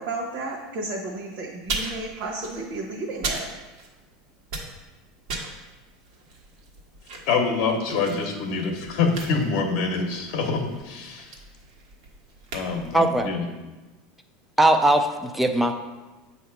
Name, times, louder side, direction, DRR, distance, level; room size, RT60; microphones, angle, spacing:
voice 1, 0.0-3.4, right 2 dB, 50° right, -3 dB, 1.1 m, -32 dB
sound 1, 1.6-4.1 4.4-13.3, right 3 dB, 75° right, 1.3 m, -37 dB
voice 2, 7.3-11.3 12.5-13.5, left 4 dB, 60° left, 3 dB, 0.8 m, -25 dB
voice 3, 12.9-13.3 14.6-15.7, right 1 dB, 5° right, 5 dB, 0.4 m, -19 dB
7.9 x 2.8 x 5.7 m, 1.2 s
supercardioid pair, 150°, 3 cm